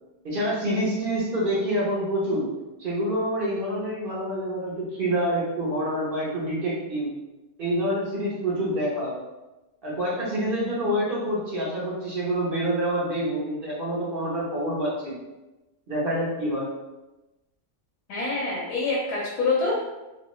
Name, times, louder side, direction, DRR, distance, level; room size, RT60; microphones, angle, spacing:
voice 1, 0.2-2.5 2.8-7.1 7.6-9.2 9.8-15.2 15.9-16.7, equal, 40° right, -7 dB, 1.0 m, -27 dB
voice 2, 18.1-19.8, left 3 dB, 80° left, -4 dB, 1.2 m, -26 dB
3.0 x 2.4 x 3.0 m, 1.0 s
omnidirectional pair, 1.7 m